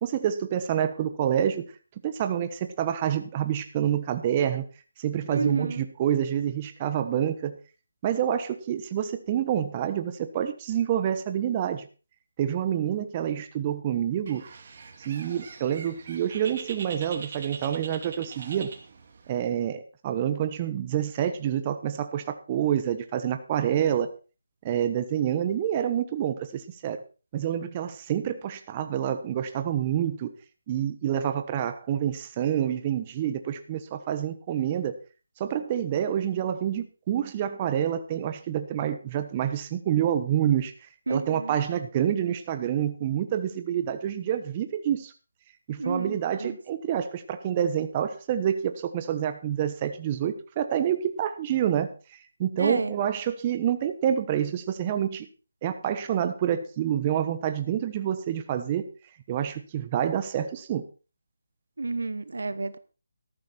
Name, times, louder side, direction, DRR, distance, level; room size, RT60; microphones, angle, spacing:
voice 1, 0.0-1.6 2.0-4.7 5.0-7.6 8.0-11.9 12.4-14.4 15.0-18.7 19.3-24.1 24.6-27.0 27.3-30.3 30.7-34.9 35.4-40.7 41.1-45.1 45.7-55.3 55.6-58.9 59.3-60.8, right 10 dB, 25° right, 9 dB, 1.1 m, -27 dB
voice 2, 5.3-5.8 41.1-41.6 45.8-46.6 52.6-52.9 61.8-62.8, right 3 dB, 75° right, 15 dB, 1.3 m, -30 dB
Bird, 14.3-19.3, right 5 dB, 45° right, 2.6 m, -42 dB
14.0 x 12.0 x 4.4 m, 0.34 s
figure-of-eight pair, 160°, 0 cm